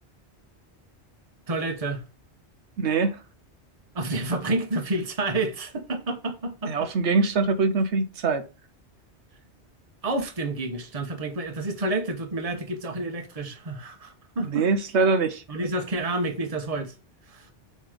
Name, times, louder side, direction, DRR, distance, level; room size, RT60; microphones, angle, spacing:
voice 1, 1.5-2.0 3.9-6.9 10.0-14.7 15.5-16.9 17.3-17.5, right 2 dB, 35° right, 1.1 m, -29 dB
voice 2, 2.8-3.2 6.6-8.5 14.4-15.4, right 4 dB, 80° right, 1.0 m, -23 dB
7.4 x 3.2 x 5.0 m
omnidirectional pair, 1.1 m